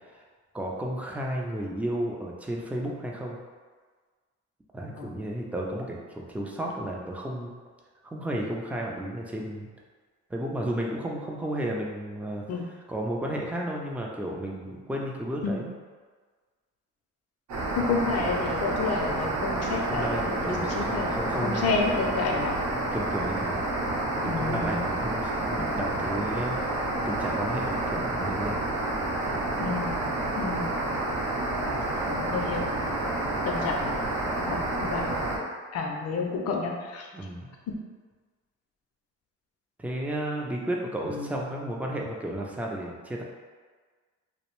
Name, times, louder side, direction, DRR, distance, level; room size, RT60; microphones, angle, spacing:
voice 1, 0.5-3.4 4.7-7.5 8.0-9.7 10.3-12.5 12.9-15.7 19.9-21.7 22.9-23.6 24.2-26.6 27.1-28.6 37.1-37.5 39.8-43.2, right 1 dB, 5° right, -2 dB, 0.3 m, -33 dB
sound 1, 17.5-35.4, right 2 dB, 65° right, 0.7 m, -29 dB
voice 2, 17.7-22.6 24.2-24.8 25.6-26.1 29.6-30.1 30.4-30.8 31.6-32.7 33.4-35.3 35.7-37.1 41.0-41.4, left 4 dB, 55° left, 1 dB, 0.5 m, -31 dB
2.6 x 2.0 x 2.9 m, 1.5 s
cardioid pair, 90°, 30 cm